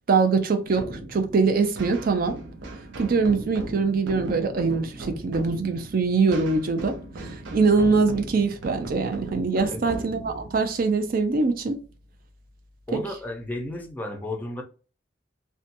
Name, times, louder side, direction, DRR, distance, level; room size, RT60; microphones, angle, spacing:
voice 1, 0.1-2.4 3.0-11.8 12.9-13.0, right 4 dB, 50° right, 0.4 m, -23 dB
sound 1, 0.6-12.1, right 2 dB, 90° right, 0.6 m, -38 dB
voice 2, 9.7-10.0 12.9-14.6, left 1 dB, 10° left, 0.5 m, -33 dB
2.7 x 2.2 x 2.5 m
head